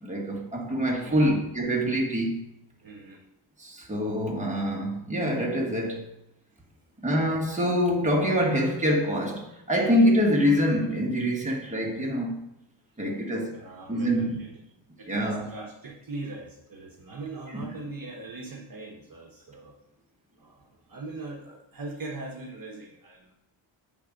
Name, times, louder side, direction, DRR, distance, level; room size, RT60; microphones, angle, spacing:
voice 1, 0.0-2.4 3.6-6.1 7.0-12.4 13.0-13.6 13.9-14.4 15.1-15.4 17.5-17.7, equal, 15° right, 1.4 m, -25 dB
voice 2, 1.0-1.3 2.8-3.2 11.4-11.6 13.5-14.5 15.0-19.7 20.4-23.3, right 2 dB, 45° right, 1.1 m, -40 dB
8.2 x 3.6 x 5.1 m
cardioid pair, 100°, 47 cm